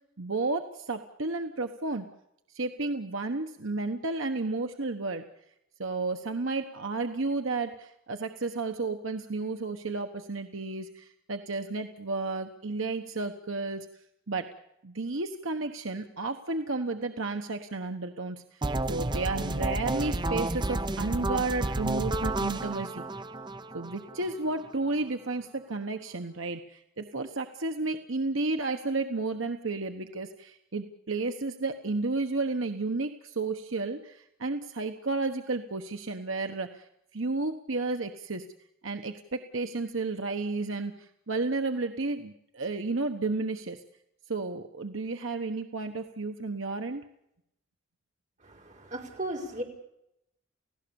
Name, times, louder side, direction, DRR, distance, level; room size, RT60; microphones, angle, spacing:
voice 1, 0.2-2.0 2.5-5.2 5.8-13.9 14.3-14.5 14.8-18.6 18.9-23.0 23.7-36.8 37.1-38.4 38.8-43.8 44.3-47.0, right 3 dB, 70° right, 6 dB, 1.2 m, -32 dB
sound 1, 18.6-24.6, right 2 dB, 20° right, 0.8 m, -31 dB
voice 2, 48.4-49.6, right 1 dB, 35° right, 1 dB, 5.1 m, -36 dB
30.0 x 16.5 x 7.1 m, 0.81 s
head